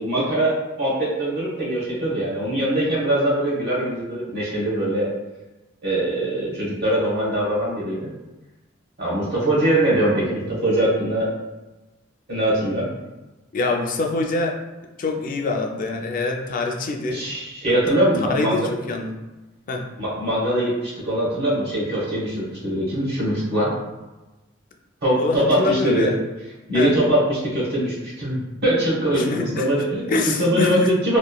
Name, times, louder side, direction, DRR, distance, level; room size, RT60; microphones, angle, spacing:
voice 1, 0.0-5.1 5.8-8.1 9.0-11.2 12.3-12.9 17.1-18.7 20.0-23.7 25.0-26.1 26.7-31.2, right 1 dB, 50° right, -6 dB, 0.9 m, -22 dB
voice 2, 13.5-14.6 15.0-17.2 17.7-17.8 18.2-19.1 19.7-19.8 25.2-26.2 26.7-26.9 29.1-29.7 30.1-30.9, left 3 dB, 40° left, 3 dB, 0.3 m, -25 dB
2.9 x 2.1 x 2.2 m, 1.1 s
head